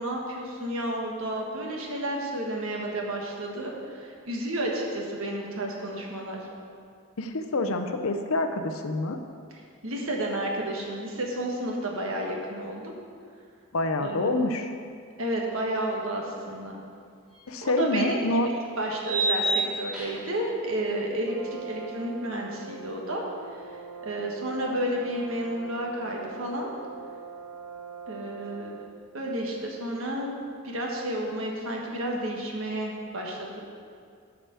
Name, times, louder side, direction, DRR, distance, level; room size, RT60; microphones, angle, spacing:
voice 1, 0.0-6.4 9.8-12.9 14.0-14.2 15.2-16.8 17.6-23.2 23.5-23.6 24.0-26.7 28.1-28.8 29.1-30.4 30.6-33.6, right 1 dB, 65° right, -1 dB, 1.5 m, -31 dB
voice 2, 7.2-9.2 13.7-14.7 17.5-18.5, left 2 dB, 70° left, 7 dB, 0.7 m, -27 dB
sound 1, 17.3-17.4 19.0-20.4, right 2 dB, 5° right, 2.4 m, -28 dB
Brass instrument, 21.2-29.0, right 5 dB, 90° right, 0.5 m, -42 dB
8.9 x 5.0 x 6.9 m, 2.2 s
head